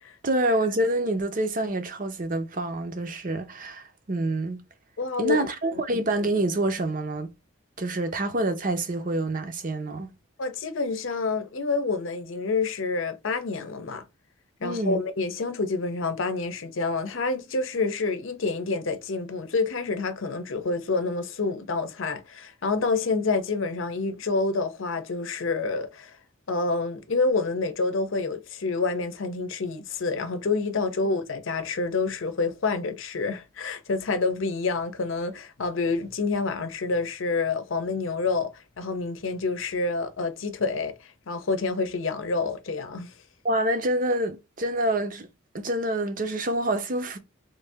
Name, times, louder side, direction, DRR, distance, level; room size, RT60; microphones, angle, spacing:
voice 1, 0.2-4.6 5.2-7.3 7.8-10.1 14.6-15.0 43.4-45.3 45.5-47.2, right 1 dB, 45° right, 0.6 m, -27 dB
voice 2, 5.0-5.5 10.4-14.0 14.6-26.1 26.5-40.9 41.3-43.1, left 3 dB, 80° left, 0.7 m, -28 dB
3.2 x 2.6 x 3.4 m
head